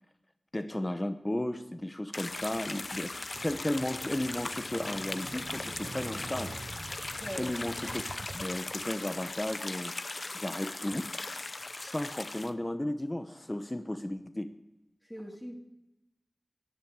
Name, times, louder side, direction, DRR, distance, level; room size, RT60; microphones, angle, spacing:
voice 1, 0.5-6.6 7.4-8.0 8.3-9.9 10.3-11.1 11.8-14.5, left 1 dB, 25° left, 9 dB, 0.8 m, -34 dB
sound 1, 2.1-12.5, left 2 dB, 65° left, 0.7 m, -39 dB
Motorcycle / Engine starting, 2.3-9.5, right 3 dB, 75° right, 0.5 m, -47 dB
voice 2, 7.2-7.5 7.8-8.0 15.0-15.6, equal, 5° left, -2 dB, 2.1 m, -41 dB
16.5 x 10.5 x 4.8 m, 0.93 s
wide cardioid pair, 55°, 0 cm